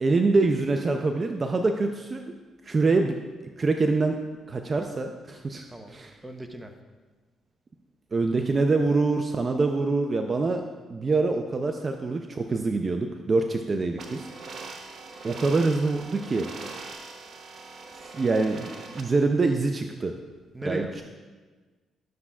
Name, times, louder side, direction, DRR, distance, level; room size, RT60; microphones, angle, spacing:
voice 1, 0.0-2.3 2.6-3.2 3.6-4.2 4.5-6.1 8.1-10.6 10.9-14.3 15.2-16.5 18.0-18.7 18.9-20.1 20.6-21.0, right 3 dB, 35° right, 5 dB, 0.5 m, -25 dB
voice 2, 6.2-6.7 20.5-21.0, right 1 dB, 10° right, 5 dB, 0.8 m, -36 dB
sound 1, 14.0-19.0, right 4 dB, 60° right, 0.9 m, -41 dB
12.0 x 7.0 x 2.4 m, 1.3 s
cardioid pair, 90°, 0 cm